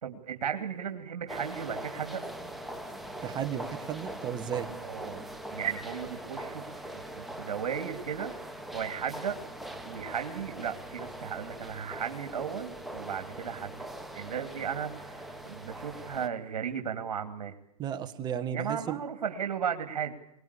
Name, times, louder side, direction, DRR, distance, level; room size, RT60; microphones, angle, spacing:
voice 1, 0.0-2.2 4.8-5.3 5.5-8.3 8.7-9.4 9.8-13.9 14.1-17.6 18.5-20.1, right 8 dB, 80° right, 6 dB, 2.8 m, -35 dB
sound 1, 1.3-16.3, right 1 dB, ahead, 1.9 m, -42 dB
voice 2, 3.2-4.7 17.8-19.0, right 9 dB, 20° right, 9 dB, 1.6 m, -34 dB
23.0 x 20.5 x 8.4 m, 0.79 s
hypercardioid pair, 145°, 20 cm